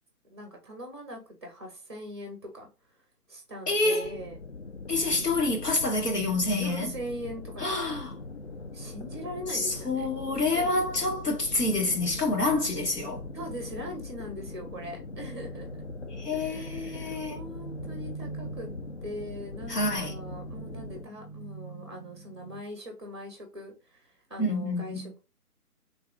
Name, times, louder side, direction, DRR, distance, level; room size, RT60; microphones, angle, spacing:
voice 1, 0.2-4.4 5.1-5.3 6.6-7.9 8.7-10.1 10.3-10.7 13.3-15.8 16.3-18.7 19.0-25.2, equal, 20° right, 0.6 m, -41 dB
voice 2, 3.7-4.2 4.9-6.9 7.6-8.1 9.5-13.2 16.1-17.3 19.7-20.1 24.4-25.1, left 2 dB, 85° left, 1.6 m, -28 dB
sound 1, 4.0-21.0, left 3 dB, 50° left, 0.4 m, -41 dB
sound 2, 12.8-22.6, right 4 dB, 65° left, 0.9 m, -45 dB
3.5 x 2.4 x 3.3 m
figure-of-eight pair, 145°, 47 cm